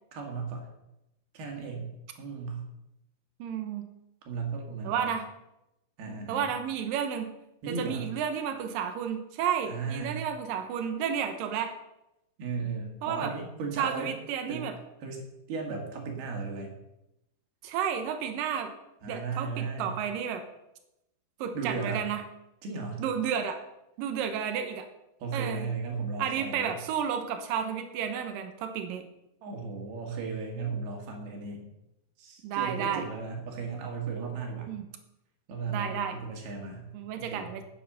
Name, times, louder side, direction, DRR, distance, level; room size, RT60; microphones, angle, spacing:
voice 1, 0.1-0.7 1.3-1.9 2.2-2.7 4.2-5.1 6.0-6.5 7.6-8.1 9.7-10.2 12.4-14.1 14.5-14.7 15.0-15.2 15.5-16.7 19.0-20.0 21.5-22.0 22.6-23.0 25.2-26.7 29.4-31.6 32.2-34.7 35.5-36.9 37.2-37.5, right 4 dB, 60° right, 1 dB, 3.8 m, -35 dB
voice 2, 3.4-3.9 4.8-5.3 6.1-7.3 7.7-11.7 13.0-13.3 13.8-14.7 17.6-18.7 19.1-20.4 21.4-22.2 23.0-23.6 24.0-24.9 25.3-25.7 26.2-29.0 32.4-33.0 34.7-34.8 35.7-36.1 36.9-37.6, right 8 dB, 90° right, 6 dB, 1.9 m, -31 dB
9.8 x 9.2 x 6.9 m, 0.88 s
omnidirectional pair, 5.5 m